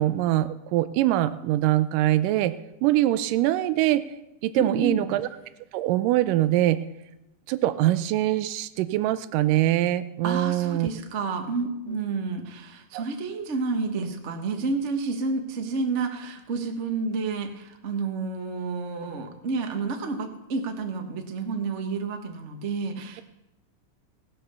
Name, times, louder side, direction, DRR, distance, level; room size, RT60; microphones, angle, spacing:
voice 1, 0.0-2.5 2.8-4.0 4.4-5.3 5.7-6.8 7.5-10.9 12.9-13.0, right 14 dB, 90° right, 14 dB, 2.2 m, -23 dB
voice 2, 4.6-5.1 10.2-23.2, right 4 dB, 65° right, 4 dB, 0.7 m, -30 dB
18.0 x 6.8 x 6.7 m, 0.93 s
omnidirectional pair, 3.7 m